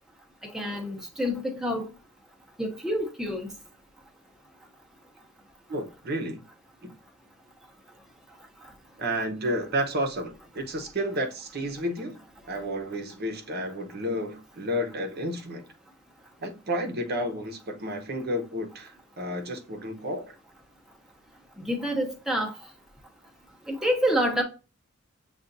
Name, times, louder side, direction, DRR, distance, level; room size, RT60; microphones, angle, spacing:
voice 1, 0.5-1.9 2.6-3.5 21.6-22.5 23.7-24.4, equal, ahead, 0.7 m, -27 dB
voice 2, 5.7-6.4 6.8-6.9 9.0-12.2 12.5-15.7 16.4-20.3, equal, 50° right, 0.8 m, -31 dB
6.8 x 2.4 x 2.6 m
head